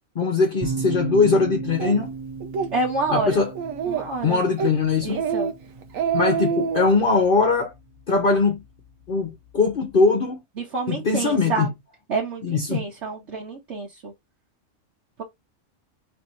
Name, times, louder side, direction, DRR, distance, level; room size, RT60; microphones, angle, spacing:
voice 1, 0.2-2.1 3.1-3.5 4.2-5.2 6.1-7.7 8.1-8.6 9.1-9.3 9.5-10.4 10.9-11.7 12.4-12.8, left 4 dB, 50° left, 0.9 m, -21 dB
sound 1, 0.6-10.0, right 5 dB, 25° right, 1.0 m, -37 dB
Speech, 1.8-2.0 2.4-2.7 3.1-3.2 3.6-4.2 4.6-4.8 5.1-5.5 5.8-6.9, right 6 dB, 85° right, 1.2 m, -25 dB
voice 2, 2.7-3.4 3.9-4.4 5.0-5.5 10.6-11.7 12.1-14.1, right 3 dB, 60° right, 1.5 m, -28 dB
3.3 x 2.9 x 4.4 m
omnidirectional pair, 1.3 m